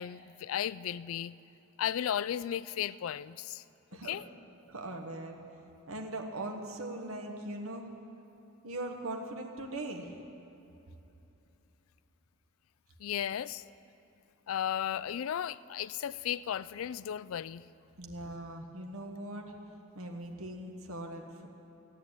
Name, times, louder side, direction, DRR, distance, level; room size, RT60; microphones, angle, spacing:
voice 1, 0.0-1.3 1.8-3.6 4.0-4.2 13.0-13.6 14.5-17.6, left 9 dB, 70° left, 18 dB, 0.3 m, -35 dB
voice 2, 4.7-5.4 5.9-7.9 8.6-10.2 18.0-19.5 19.9-21.5, right 1 dB, 80° right, 2 dB, 1.3 m, -40 dB
13.5 x 10.5 x 8.8 m, 2.9 s
head